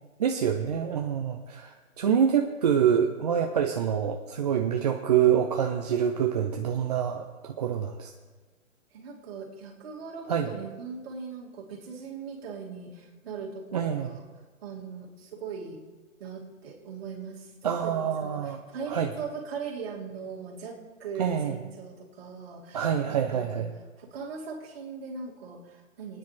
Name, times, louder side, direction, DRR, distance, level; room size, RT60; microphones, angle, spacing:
voice 1, 0.2-8.1 10.3-10.5 13.7-14.2 17.6-18.6 18.9-19.1 21.2-21.6 22.7-23.7, right 8 dB, 30° right, 4 dB, 0.6 m, -26 dB
voice 2, 8.9-14.2 14.6-15.8 16.2-23.6 24.0-26.2, right 5 dB, 45° right, -2 dB, 2.6 m, -40 dB
19.5 x 9.8 x 3.3 m, 1.3 s
figure-of-eight pair, 140°, 41 cm